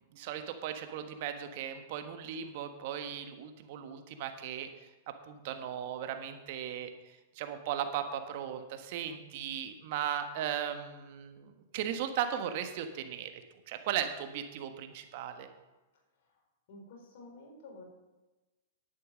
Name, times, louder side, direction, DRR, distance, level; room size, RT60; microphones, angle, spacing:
voice 1, 0.1-4.9 5.3-6.9 7.3-13.3 13.7-15.5, right 9 dB, 55° right, 7 dB, 1.4 m, -37 dB
voice 2, 16.7-17.8, left 2 dB, 60° left, 0 dB, 4.4 m, -50 dB
10.5 x 9.0 x 6.4 m, 1.1 s
hypercardioid pair, 110°, 0 cm